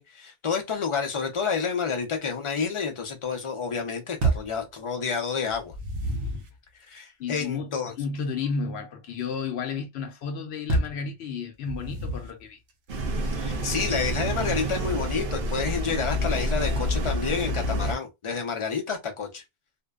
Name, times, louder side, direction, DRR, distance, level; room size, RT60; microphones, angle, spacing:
voice 1, 0.0-5.7 6.9-7.9 13.3-19.4, left 6 dB, 35° left, 0.6 m, -29 dB
sound 1, 4.2-4.6 5.5-6.6 10.7-11.1 11.7-12.4, right 2 dB, 85° right, 0.9 m, -28 dB
voice 2, 7.2-12.6, left 5 dB, 80° left, 0.8 m, -32 dB
sound 2, 12.9-17.9, equal, 65° right, 0.7 m, -28 dB
2.6 x 2.1 x 2.2 m
omnidirectional pair, 1.1 m